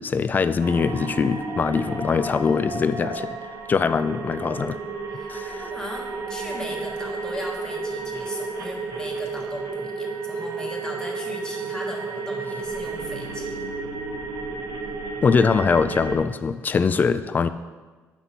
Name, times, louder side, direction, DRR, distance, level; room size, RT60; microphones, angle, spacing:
voice 1, 0.0-3.3 3.7-4.8 5.3-5.5 15.2-17.5, left 5 dB, 30° left, 12 dB, 0.3 m, -22 dB
sound 1, 0.6-16.2, right 3 dB, 75° right, 1.1 m, -32 dB
voice 2, 5.1-13.7, left 1 dB, 15° left, -1 dB, 1.4 m, -38 dB
7.9 x 5.9 x 4.2 m, 1.3 s
cardioid pair, 125°, 6 cm